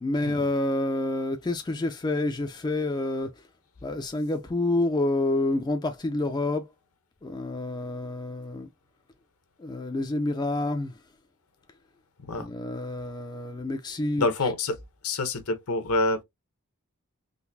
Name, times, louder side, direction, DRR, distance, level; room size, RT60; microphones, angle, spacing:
voice 1, 0.0-3.4 3.8-6.7 7.2-8.7 9.6-11.0 12.4-14.5, left 2 dB, 20° left, 0.4 m, -28 dB
voice 2, 14.2-14.8 15.0-16.2, left 2 dB, 70° left, 0.8 m, -26 dB
3.8 x 2.6 x 2.6 m
head